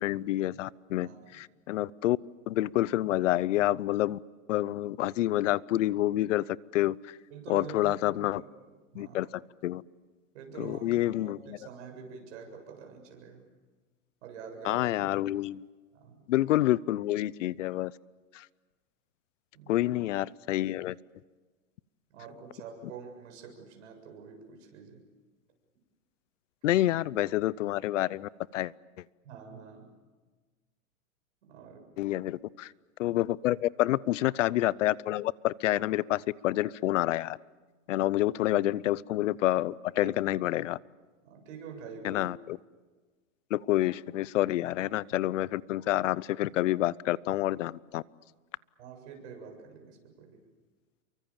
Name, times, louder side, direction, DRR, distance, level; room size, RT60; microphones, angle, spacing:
voice 1, 0.0-2.2 2.5-4.2 4.5-7.0 7.5-8.4 9.0-9.3 9.6-9.8 10.6-11.4 14.6-15.7 16.3-17.9 19.7-21.0 26.6-28.7 32.0-32.7 33.0-37.4 37.9-40.8 42.0-42.4 43.5-48.0, left 15 dB, 65° left, 23 dB, 0.7 m, -28 dB
voice 2, 7.3-8.4 8.9-9.2 10.3-13.5 14.2-14.9 15.9-16.2 19.5-19.8 22.1-25.0 29.2-29.9 31.4-31.9 38.0-38.1 40.0-40.1 40.4-40.5 41.2-42.3 48.8-50.4, right 6 dB, 55° right, 3 dB, 7.4 m, -46 dB
29.0 x 24.0 x 7.3 m, 1.3 s
hypercardioid pair, 150°, 41 cm